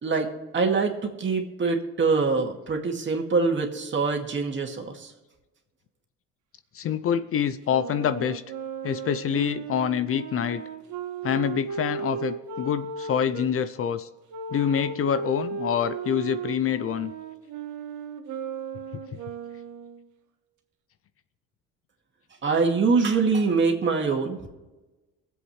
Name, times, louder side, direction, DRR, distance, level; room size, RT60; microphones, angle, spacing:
voice 1, 0.0-5.1 22.4-24.4, right 4 dB, 35° right, 3 dB, 2.1 m, -24 dB
voice 2, 6.7-8.4 8.8-10.6 11.2-14.1 14.5-17.1, left 8 dB, 45° left, 13 dB, 0.6 m, -26 dB
Wind instrument woodwind instrument, 7.6-13.5 14.3-20.1, right 6 dB, 65° right, 1.5 m, -36 dB
23.0 x 7.9 x 3.2 m, 1.1 s
cardioid pair, 105°, 31 cm